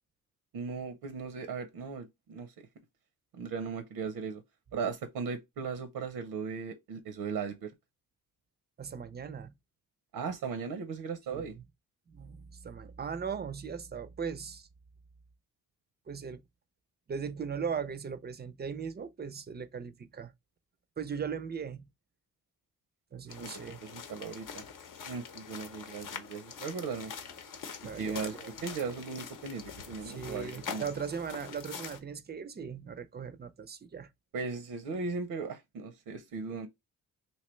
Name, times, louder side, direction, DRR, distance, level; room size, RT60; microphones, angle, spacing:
voice 1, 0.5-2.7 3.3-4.4 4.7-7.7 10.1-11.6 23.4-23.5 23.8-24.6 25.1-27.1 28.0-28.3 28.6-30.9 34.3-36.7, right 5 dB, 80° right, 0.7 m, -37 dB
voice 2, 8.8-9.6 11.3-11.6 12.1-14.7 16.1-16.4 17.1-20.3 21.0-21.9 23.1-23.8 27.8-28.5 30.0-34.1, right 6 dB, 30° right, 0.4 m, -38 dB
sound 1, 23.3-32.0, left 6 dB, 60° left, 0.7 m, -44 dB
3.2 x 2.8 x 3.1 m
cardioid pair, 110°, 36 cm